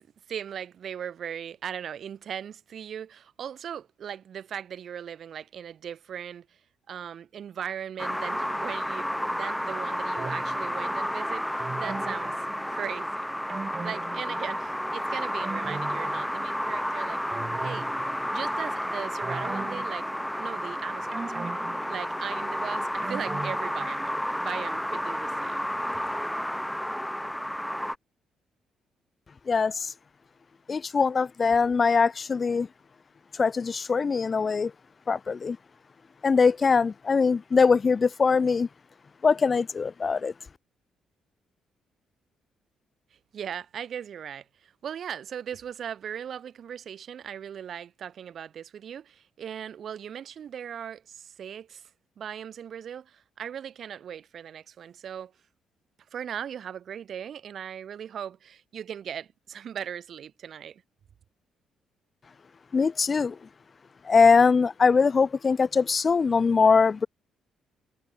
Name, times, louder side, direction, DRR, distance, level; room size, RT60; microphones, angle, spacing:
voice 1, 0.0-6.5 6.9-12.4 12.7-13.3 13.8-17.9 18.3-20.1 20.4-21.5 21.9-25.6 43.3-51.8 52.2-55.3 56.1-60.8, right 8 dB, 60° right, 6.0 m, -38 dB
sound 1, 8.0-27.9, equal, 5° left, 0.9 m, -31 dB
sound 2, 10.2-11.0 11.6-13.0 13.5-14.8 15.2-16.8 17.3-18.6 19.2-20.7 21.1-24.4 24.7-24.8, right 4 dB, 35° right, 5.3 m, -40 dB
voice 2, 29.5-29.8 30.7-32.7 33.4-34.7 35.1-35.6 36.2-38.7 39.2-40.3 62.7-63.3 64.1-67.1, left 5 dB, 35° left, 0.6 m, -22 dB
cardioid pair, 90°, 0 cm